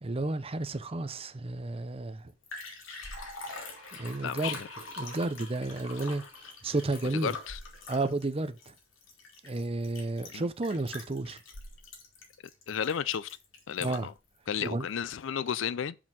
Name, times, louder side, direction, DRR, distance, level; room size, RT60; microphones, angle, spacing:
voice 1, 0.0-2.3 3.9-4.6 5.0-6.2 6.6-7.4 7.9-8.7 9.4-11.4 13.8-14.1 14.6-14.9, right 2 dB, 30° right, 0.6 m, -32 dB
Liquid, 2.0-2.1 2.3-14.2 14.6-14.7, left 2 dB, 85° left, 2.3 m, -44 dB
voice 2, 4.2-4.7 7.2-7.6 10.3-10.5 12.7-13.3 13.7-14.1 14.5-15.9, left 8 dB, 65° left, 0.4 m, -33 dB
5.5 x 5.0 x 6.1 m
head